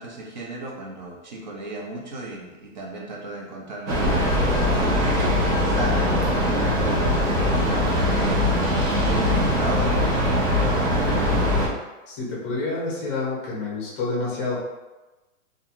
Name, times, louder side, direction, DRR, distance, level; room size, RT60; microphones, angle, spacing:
voice 1, 0.0-4.0 4.6-8.5 9.0-11.1, right 2 dB, 40° right, -1 dB, 0.4 m, -35 dB
Train, 3.9-11.7, left 1 dB, 65° right, 0.8 m, -21 dB
voice 2, 12.1-14.6, left 3 dB, 20° left, -5 dB, 0.6 m, -28 dB
2.4 x 2.2 x 2.8 m, 1.1 s
hypercardioid pair, 165°, 39 cm